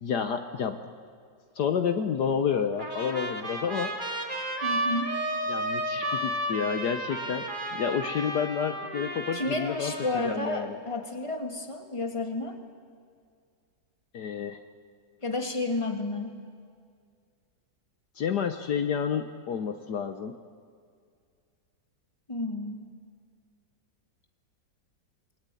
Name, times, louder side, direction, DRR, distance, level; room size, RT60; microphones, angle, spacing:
voice 1, 0.0-0.8 1.5-3.9 5.5-7.5 7.7-10.8 14.1-14.6 18.1-20.3, left 7 dB, 65° left, 8 dB, 1.5 m, -30 dB
Trumpet, 2.8-10.5, right 1 dB, 25° right, 2.9 m, -33 dB
voice 2, 4.6-5.1 9.3-12.6 15.2-16.4 22.3-22.8, left 2 dB, 15° left, 4 dB, 2.3 m, -31 dB
28.5 x 20.5 x 9.2 m, 2.2 s
omnidirectional pair, 2.0 m